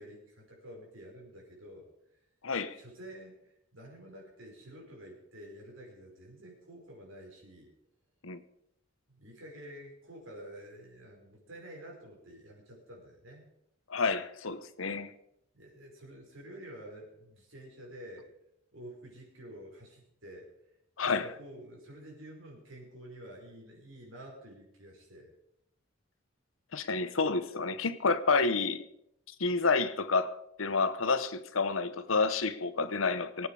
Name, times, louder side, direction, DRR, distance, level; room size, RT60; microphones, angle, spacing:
voice 1, 0.0-1.9 2.7-7.7 9.1-13.5 15.5-18.3 18.7-20.5 21.0-25.3, right 1 dB, 75° right, 5.6 m, -49 dB
voice 2, 2.4-2.8 8.2-8.4 13.9-15.1 21.0-21.3 26.7-28.8 29.4-33.5, left 4 dB, 80° left, 1.0 m, -29 dB
23.0 x 9.0 x 4.9 m
head